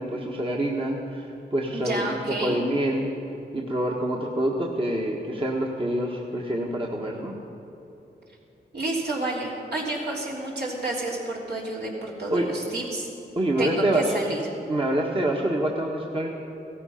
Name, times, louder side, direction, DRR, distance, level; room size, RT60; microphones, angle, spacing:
voice 1, 0.0-3.1 3.5-7.3 12.3-12.5 13.3-14.1 14.7-16.3, right 1 dB, 30° right, -1 dB, 1.5 m, -26 dB
voice 2, 1.7-2.6 8.7-13.1 13.6-14.4, right 2 dB, 65° right, -3 dB, 3.4 m, -30 dB
16.5 x 13.5 x 5.8 m, 3.0 s
wide cardioid pair, 95°, 18 cm